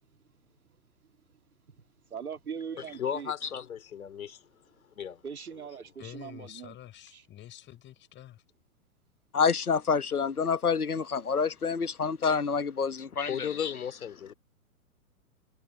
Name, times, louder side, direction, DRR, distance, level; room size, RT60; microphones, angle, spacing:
voice 1, 0.5-1.4 1.7-3.3 5.2-6.8 7.1-7.2, right 7 dB, 80° right, 3.1 m, -42 dB
voice 2, 3.0-4.5 5.0-5.2 13.3-14.3, left 8 dB, 70° left, 3.5 m, -35 dB
voice 3, 6.0-8.4, left 12 dB, 25° left, 6.1 m, -48 dB
voice 4, 9.3-13.7, left 5 dB, 90° left, 1.2 m, -28 dB
figure-of-eight pair, 110°, 43 cm